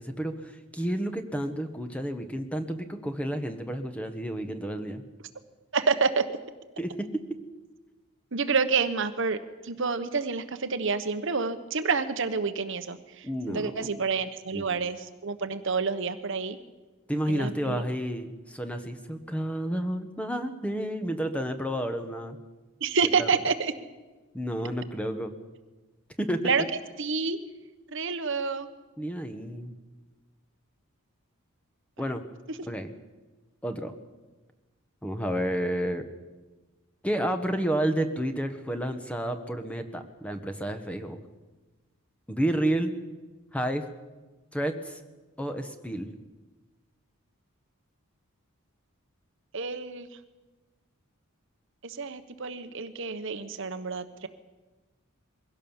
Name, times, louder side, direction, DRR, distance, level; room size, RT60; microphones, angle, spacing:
voice 1, 0.0-5.0 6.8-7.1 13.2-13.7 14.5-14.8 17.1-22.4 23.2-23.3 24.3-25.3 26.2-26.5 29.0-29.7 32.0-32.2 32.6-32.9 33.6-33.9 35.0-36.0 37.0-41.2 42.3-42.9 43.5-43.9 44.5-45.0 45.4-46.1, right 1 dB, 5° left, 7 dB, 1.3 m, -30 dB
voice 2, 5.7-6.3 8.3-16.6 17.3-17.8 22.8-23.7 26.4-26.6 27.0-27.4 27.9-28.7 32.5-32.6 49.5-50.1 51.8-54.3, right 5 dB, 60° right, 10 dB, 1.1 m, -28 dB
22.5 x 16.5 x 7.3 m, 1.2 s
head